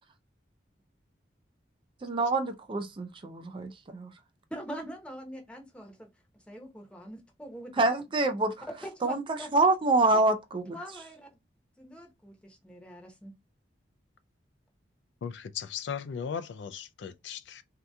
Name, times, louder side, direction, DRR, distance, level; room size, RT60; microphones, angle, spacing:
voice 1, 2.0-4.1 7.8-8.5 9.0-10.8, right 2 dB, 30° right, 0.4 m, -26 dB
voice 2, 4.5-6.1 6.5-7.8 8.8-9.5 10.7-11.3 11.8-13.3, equal, 5° left, 0.8 m, -43 dB
voice 3, 15.2-17.6, left 7 dB, 65° left, 0.3 m, -37 dB
3.5 x 2.8 x 2.2 m
head